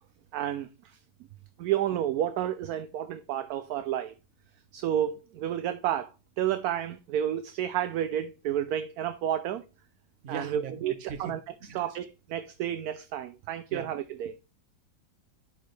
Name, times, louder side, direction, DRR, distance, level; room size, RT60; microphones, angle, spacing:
voice 1, 0.3-0.7 1.6-4.1 4.7-6.1 6.4-9.6 10.3-10.9 11.2-11.4 11.7-14.3, right 11 dB, 70° right, 0.9 m, -30 dB
voice 2, 10.2-12.0 13.7-13.9, right 6 dB, 50° right, 1.1 m, -40 dB
10.5 x 4.7 x 3.2 m
omnidirectional pair, 1.9 m